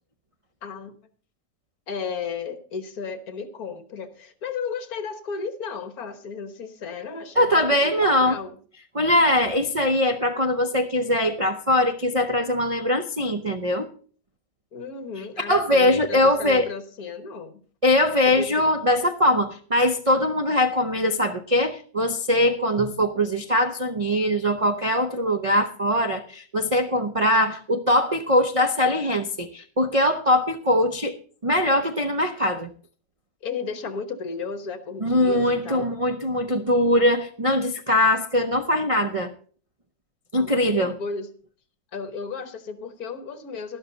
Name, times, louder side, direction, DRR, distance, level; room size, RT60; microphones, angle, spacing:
voice 1, 0.6-0.9 1.9-8.6 14.7-17.6 18.2-18.7 33.4-35.9 40.4-41.3 41.9-43.8, left 5 dB, 55° left, 10 dB, 1.7 m, -34 dB
voice 2, 7.4-8.4 8.9-13.9 15.5-16.7 17.8-31.2 31.4-32.7 35.0-39.3 40.3-40.9, left 1 dB, 55° right, 2 dB, 0.3 m, -22 dB
12.0 x 12.0 x 3.9 m, 0.43 s
omnidirectional pair, 1.9 m